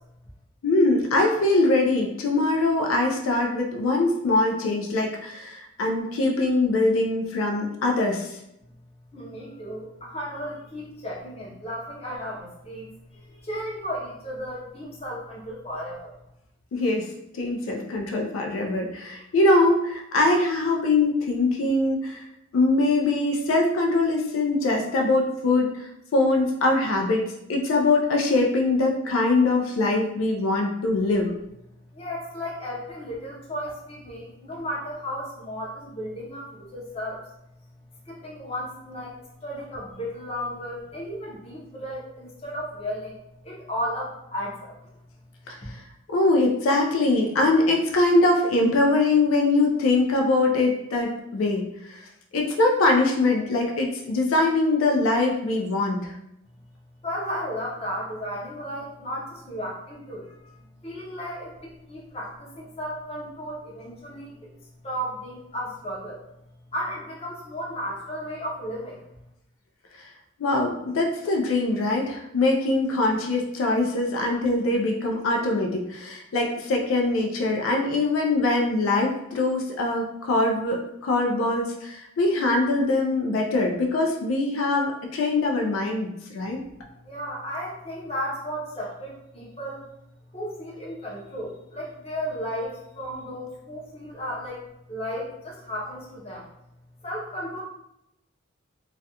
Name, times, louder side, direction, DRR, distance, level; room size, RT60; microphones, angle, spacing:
voice 1, 0.6-8.4 16.7-17.1 17.3-22.3 22.5-27.2 27.5-31.3 45.5-45.8 46.1-56.1 69.9-70.1 70.4-86.6, left 2 dB, 80° left, 1 dB, 0.4 m, -23 dB
voice 2, 9.1-16.1 31.0-31.1 31.9-37.2 38.0-45.0 45.6-45.7 57.0-66.2 66.7-69.1 86.5-89.8 90.3-96.5 97.0-97.6, equal, 30° left, -4 dB, 0.6 m, -34 dB
2.4 x 2.1 x 2.7 m, 0.83 s
head